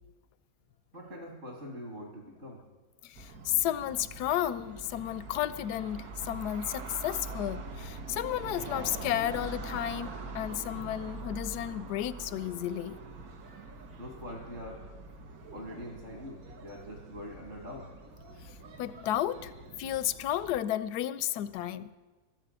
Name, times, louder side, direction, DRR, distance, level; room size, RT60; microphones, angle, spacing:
voice 1, 0.9-2.6 14.0-14.8 15.5-17.9, equal, 45° right, 2.8 m, -43 dB
voice 2, 3.0-13.0 18.8-19.5 19.8-21.9, left 12 dB, 85° left, 1.1 m, -32 dB
sound 1, 3.1-20.6, right 3 dB, 65° right, 1.7 m, -44 dB
13.5 x 7.6 x 8.1 m
omnidirectional pair, 1.7 m